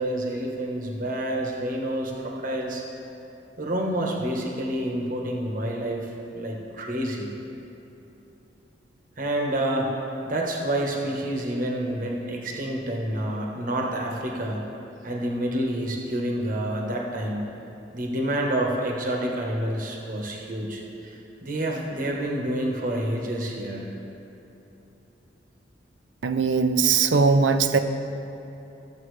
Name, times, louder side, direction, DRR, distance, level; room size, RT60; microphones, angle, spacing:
voice 1, 0.0-2.8 3.6-6.1 6.3-7.3 9.2-9.9 10.2-14.7 15.0-17.5 17.9-23.9, right 1 dB, 45° right, -1 dB, 1.2 m, -28 dB
voice 2, 26.2-27.8, right 5 dB, 70° right, 8 dB, 0.6 m, -20 dB
14.0 x 7.4 x 3.2 m, 3.0 s
head